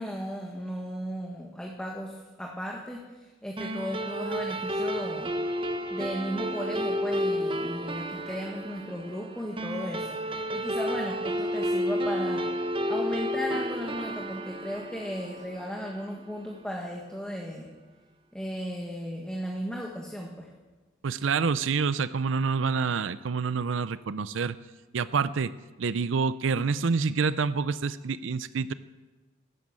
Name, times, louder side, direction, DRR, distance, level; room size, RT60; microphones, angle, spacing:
voice 1, 0.0-5.3 5.9-12.5 12.9-17.7 18.3-20.5, equal, 5° left, -1 dB, 1.6 m, -36 dB
sound 1, 3.6-16.3, equal, 25° right, 1.1 m, -31 dB
voice 2, 21.0-24.6 24.9-28.7, right 5 dB, 75° right, 15 dB, 0.5 m, -27 dB
13.0 x 12.5 x 8.8 m, 1.2 s
head